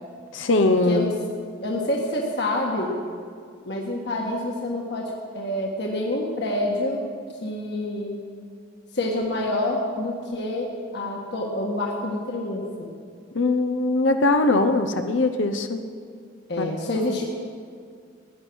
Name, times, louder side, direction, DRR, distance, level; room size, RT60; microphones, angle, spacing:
voice 1, 0.3-1.1 13.3-15.8 16.6-17.0, left 2 dB, 85° left, 7 dB, 0.8 m, -21 dB
voice 2, 1.6-3.0 3.6-7.1 7.4-8.2 8.9-12.9 16.5-17.4, left 1 dB, 60° left, -2 dB, 1.6 m, -27 dB
16.5 x 10.0 x 6.2 m, 2.2 s
head